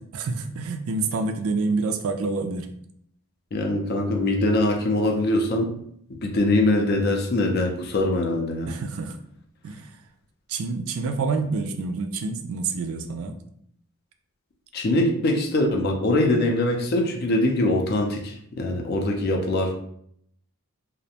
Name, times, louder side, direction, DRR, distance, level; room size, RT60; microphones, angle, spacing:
voice 1, 0.1-2.7 8.7-9.2 9.6-10.0 10.5-13.4, right 3 dB, 70° right, 6 dB, 0.3 m, -27 dB
voice 2, 3.5-5.7 6.2-8.7 14.7-19.7, left 1 dB, 45° left, 2 dB, 0.4 m, -23 dB
2.4 x 2.1 x 2.7 m, 0.69 s
head